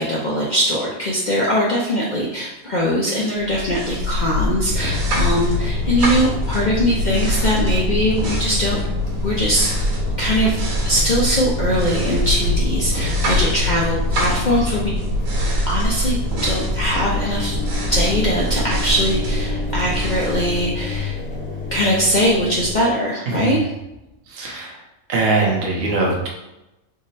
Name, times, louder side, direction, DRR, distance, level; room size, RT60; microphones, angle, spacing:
voice 1, 0.0-8.8 9.2-9.7 10.2-10.6 10.9-14.9 15.7-16.2 16.4-17.5 17.9-21.2 21.7-23.6, equal, 60° left, -4 dB, 0.4 m, -21 dB
sound 1, 3.4-21.3, equal, 85° right, 1.3 m, -23 dB
Engine, 4.7-22.8, left 5 dB, 10° left, 0.7 m, -30 dB
voice 2, 23.3-23.6 24.3-24.8 25.1-26.3, right 3 dB, 60° right, -2 dB, 1.0 m, -21 dB
3.7 x 2.0 x 4.0 m, 0.94 s
omnidirectional pair, 1.4 m